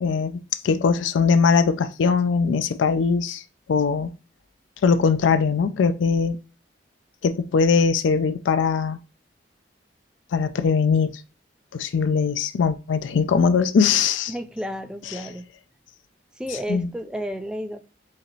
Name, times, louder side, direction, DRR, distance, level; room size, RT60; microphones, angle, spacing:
voice 1, 0.0-3.4 3.7-4.1 4.8-6.4 7.2-9.0 10.3-11.2 11.7-14.3 16.7-16.9, left 5 dB, 85° left, 0.4 m, -21 dB
voice 2, 14.3-15.4 16.4-17.8, equal, 5° right, 0.3 m, -32 dB
5.0 x 2.9 x 2.8 m
head